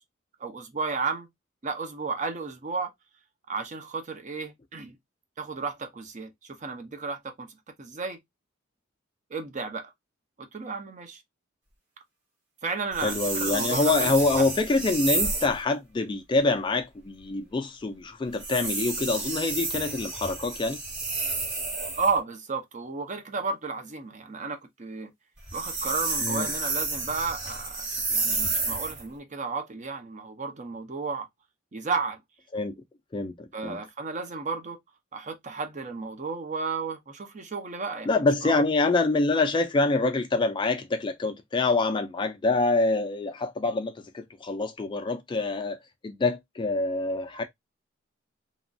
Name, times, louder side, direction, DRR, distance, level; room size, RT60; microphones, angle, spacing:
voice 1, 0.4-1.3 1.6-2.9 3.5-5.0 5.4-8.2 9.3-9.9 10.4-11.2 12.6-14.5 22.0-25.1 25.5-31.3 31.7-32.2 33.5-34.8 35.1-38.7, right 4 dB, 40° right, 0.5 m, -33 dB
sound 1, 12.9-15.6 18.3-22.2 25.4-29.0, right 3 dB, 60° right, 1.4 m, -30 dB
voice 2, 13.0-20.8 26.2-26.5 32.5-32.8 33.1-33.8 38.1-45.8 46.0-47.4, left 3 dB, 25° left, 0.3 m, -26 dB
2.9 x 2.3 x 2.5 m
head